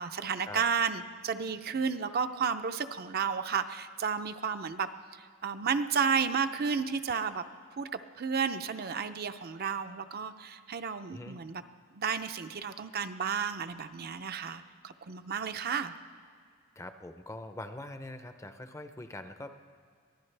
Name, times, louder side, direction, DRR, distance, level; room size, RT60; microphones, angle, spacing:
voice 1, 0.0-4.9 5.2-7.4 7.8-11.6 11.9-15.9, right 6 dB, 45° right, 9 dB, 0.5 m, -32 dB
voice 2, 16.8-19.5, left 1 dB, 15° left, 8 dB, 0.5 m, -43 dB
23.0 x 15.5 x 3.3 m, 2.1 s
head